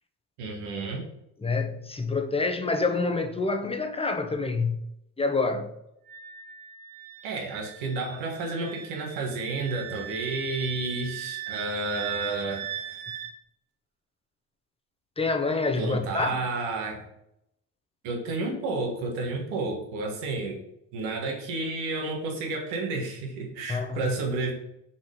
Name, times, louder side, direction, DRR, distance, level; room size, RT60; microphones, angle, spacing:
voice 1, 0.4-1.1 7.2-13.1 15.7-17.1 18.0-20.6 20.9-24.5, right 3 dB, 70° right, 1.7 m, -31 dB
voice 2, 1.4-4.8 5.2-5.7 15.2-16.4 23.7-24.0, left 3 dB, 10° left, 1.0 m, -27 dB
Wind instrument woodwind instrument, 6.1-13.3, right 9 dB, 50° right, 1.0 m, -39 dB
5.8 x 4.3 x 5.3 m
hypercardioid pair, 60°, 48 cm